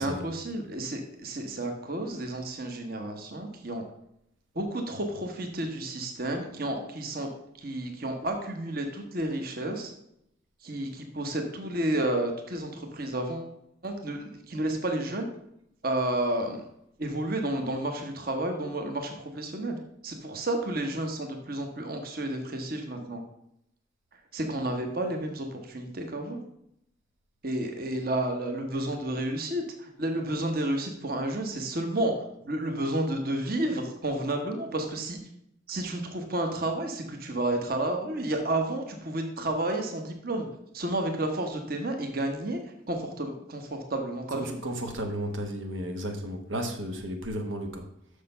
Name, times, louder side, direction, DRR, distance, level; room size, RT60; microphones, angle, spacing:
voice 1, 0.0-3.8 4.5-7.3 7.6-9.9 10.6-13.5 13.8-15.3 15.8-16.6 17.0-19.7 20.0-23.2 24.3-26.4 27.4-35.2 35.7-40.5 40.7-42.6 42.9-44.6, right 1 dB, 50° right, 4 dB, 1.1 m, -31 dB
voice 2, 44.3-47.9, equal, 85° right, 4 dB, 1.2 m, -33 dB
6.7 x 6.5 x 5.5 m, 0.77 s
head